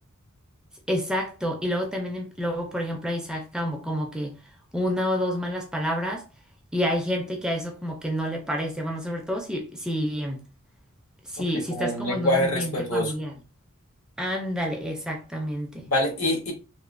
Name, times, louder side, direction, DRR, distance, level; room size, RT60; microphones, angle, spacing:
voice 1, 0.9-4.4 4.7-6.3 6.7-10.4 11.2-13.4 14.2-15.9, equal, 5° right, 0.3 m, -29 dB
voice 2, 11.8-13.1 15.9-16.5, left 1 dB, 75° left, 1.0 m, -25 dB
2.9 x 2.0 x 2.4 m
head